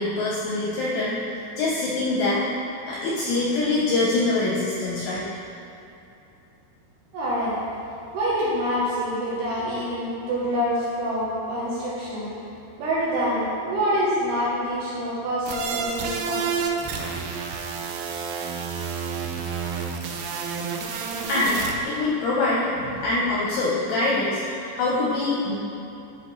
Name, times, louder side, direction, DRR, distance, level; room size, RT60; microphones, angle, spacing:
voice 1, 0.0-2.5 2.9-5.2 21.3-25.6, left 2 dB, 80° left, -5 dB, 2.4 m, -24 dB
voice 2, 7.1-7.5 8.1-12.3 12.8-16.5 16.8-16.9 17.2-17.3, equal, 75° right, -8 dB, 2.5 m, -26 dB
sound 1, 15.5-21.7, right 5 dB, 90° right, 3.1 m, -29 dB
11.0 x 4.3 x 3.0 m, 2.8 s
omnidirectional pair, 5.5 m